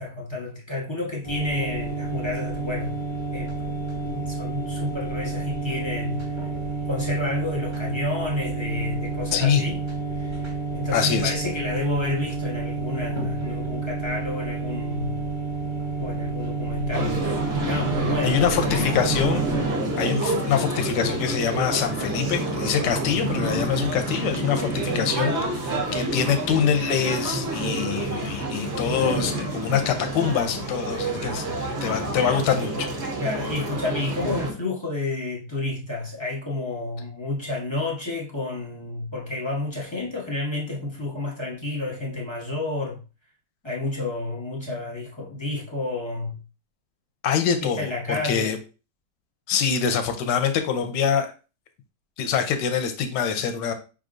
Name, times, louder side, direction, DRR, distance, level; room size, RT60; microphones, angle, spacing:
voice 1, 0.0-3.0 3.3-3.8 4.0-6.5 6.9-9.8 10.1-15.2 16.0-17.2 17.6-18.9 33.2-43.0 43.6-46.4 47.6-48.6, left 2 dB, 20° left, 0.9 m, -30 dB
sound 1, 1.2-19.7, right 4 dB, 20° right, 1.2 m, -30 dB
voice 2, 9.3-9.6 10.9-11.3 18.2-19.4 20.0-32.9 47.2-48.6 49.5-51.3 52.2-53.7, left 7 dB, 90° left, 1.3 m, -24 dB
sound 2, 16.9-34.5, right 2 dB, 45° right, 1.1 m, -28 dB
5.2 x 3.6 x 2.5 m
omnidirectional pair, 1.8 m